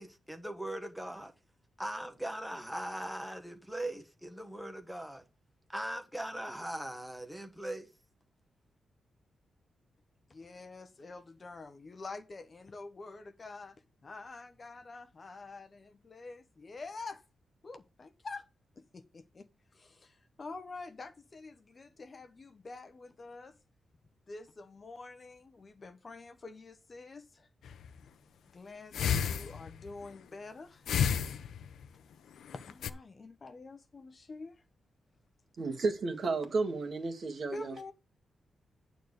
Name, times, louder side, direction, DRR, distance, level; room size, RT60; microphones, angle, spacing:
voice 1, 0.0-1.3 1.8-5.2 5.7-7.9, right 1 dB, ahead, 1.3 m, -40 dB
voice 2, 10.3-17.2 17.6-18.5 18.8-19.5 19.7-23.6 24.3-27.5 28.5-30.9 32.5-34.6 37.5-37.9, left 3 dB, 30° left, 0.9 m, -47 dB
sound 1, 27.6-28.0 28.9-29.9 30.9-31.9 32.5-32.9, left 8 dB, 80° left, 0.7 m, -31 dB
voice 3, 35.6-37.8, right 3 dB, 45° right, 1.9 m, -32 dB
9.2 x 4.0 x 6.5 m
wide cardioid pair, 170°, 0 cm